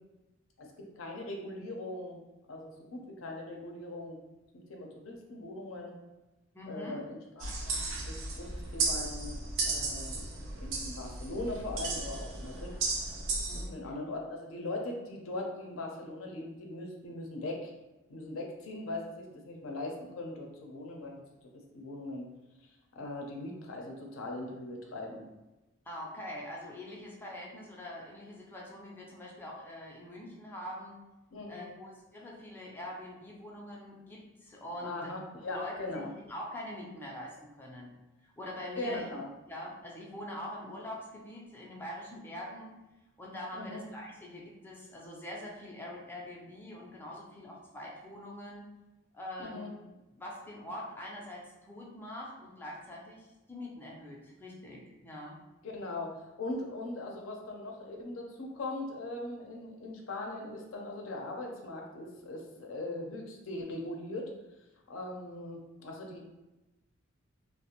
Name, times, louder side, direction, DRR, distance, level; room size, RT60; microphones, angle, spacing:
voice 1, 0.6-2.2 2.5-4.2 4.7-5.9 6.7-10.3 10.6-12.7 13.7-17.7 18.1-21.2 21.7-22.2 23.0-25.2 31.3-31.7 34.8-36.1 38.7-39.3 43.5-43.8 49.4-49.7 55.6-56.1 56.4-64.3 64.9-66.2, left 2 dB, 85° left, 1 dB, 0.5 m, -40 dB
voice 2, 6.5-7.0 13.5-13.8 25.9-31.0 31.5-35.1 35.5-37.9 38.2-39.1 39.5-42.8 43.2-48.7 49.1-49.7 50.1-55.4, left 1 dB, 10° left, -3 dB, 0.4 m, -44 dB
sound 1, 7.4-13.6, right 3 dB, 75° right, 0.5 m, -35 dB
2.4 x 2.0 x 2.8 m, 1.0 s
head